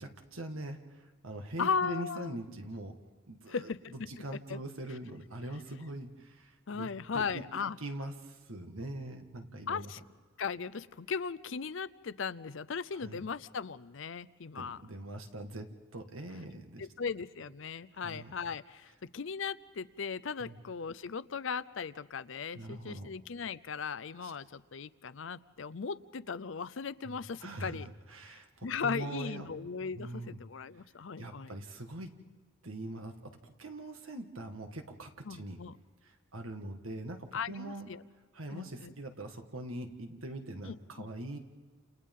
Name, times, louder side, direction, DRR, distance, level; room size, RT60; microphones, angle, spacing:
voice 1, 0.0-3.0 3.3-7.4 7.8-9.9 12.9-13.2 14.6-16.9 17.9-18.3 20.4-20.6 22.6-23.1 24.2-24.3 27.0-29.5 29.9-30.4 31.2-32.1 32.6-35.6 36.0-37.9 38.3-41.4, right 1 dB, 85° right, 5 dB, 1.9 m, -43 dB
voice 2, 1.6-2.4 3.5-4.1 4.5-4.6 6.7-7.8 9.7-10.0 10.4-14.8 16.8-27.9 28.3-31.5 35.3-35.8 37.3-38.0 38.5-38.9 40.6-41.1, left 5 dB, 65° left, 17 dB, 0.6 m, -37 dB
29.5 x 28.5 x 3.8 m, 1.4 s
head